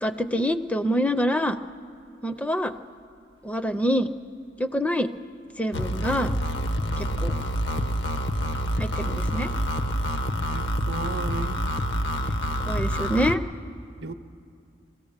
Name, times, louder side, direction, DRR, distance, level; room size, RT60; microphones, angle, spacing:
voice 1, 0.0-1.6 2.2-2.7 3.4-4.1 4.6-5.1 5.6-6.3 7.0-7.3 8.8-9.5 12.7-13.4, equal, 10° left, 0.4 m, -25 dB
sound 1, 5.7-13.4, equal, 80° left, 0.9 m, -27 dB
voice 2, 10.5-11.6 14.0-14.1, right 2 dB, 70° right, 0.7 m, -34 dB
23.0 x 16.0 x 7.2 m
head